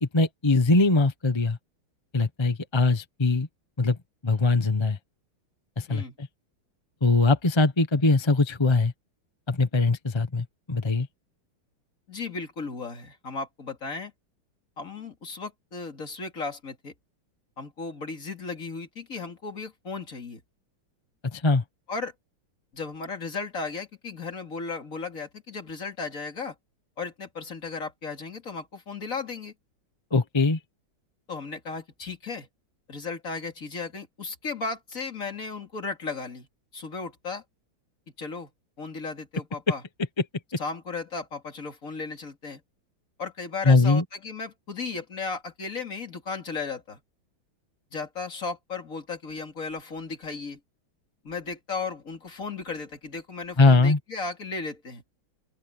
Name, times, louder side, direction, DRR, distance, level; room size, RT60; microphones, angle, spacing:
voice 1, 0.1-1.6 2.1-3.5 3.8-5.0 5.8-6.0 7.0-8.9 9.5-11.1 21.3-21.6 30.1-30.6 39.7-39.8 43.6-44.0 53.6-54.0, left 3 dB, 20° left, 0.9 m, -21 dB
voice 2, 12.1-14.1 14.8-16.9 17.6-20.4 21.9-22.1 22.7-26.5 27.0-29.5 31.3-32.5 32.9-36.5 36.7-37.4 38.2-38.5 38.8-39.8 40.6-42.6 43.2-47.0 47.9-50.6 51.2-55.0, left 4 dB, 40° left, 2.9 m, -35 dB
open air
omnidirectional pair, 2.2 m